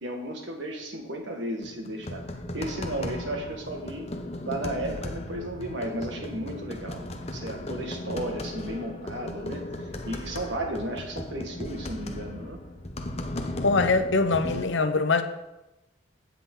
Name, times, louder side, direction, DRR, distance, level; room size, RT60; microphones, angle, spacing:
voice 1, 0.0-2.3 2.5-4.1 4.4-7.1 7.3-12.6, right 1 dB, 65° right, 1.8 m, -34 dB
sound 1, 1.6-14.6, left 1 dB, 30° left, 0.9 m, -36 dB
voice 2, 13.6-15.2, left 3 dB, 70° left, 0.9 m, -23 dB
16.0 x 6.0 x 3.8 m
head